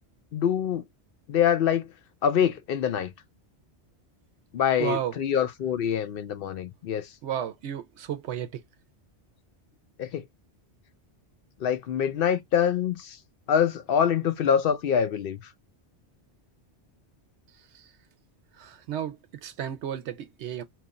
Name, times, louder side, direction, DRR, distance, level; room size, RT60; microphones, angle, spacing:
voice 1, 0.3-0.8 1.3-1.9 2.2-3.1 4.5-7.1 10.0-10.2 11.6-13.2 13.5-15.4, left 8 dB, 60° left, 0.7 m, -25 dB
voice 2, 4.8-5.1 7.2-8.6 17.7-17.9 18.6-20.6, right 9 dB, 75° right, 0.9 m, -33 dB
2.9 x 2.4 x 3.9 m
omnidirectional pair, 1.2 m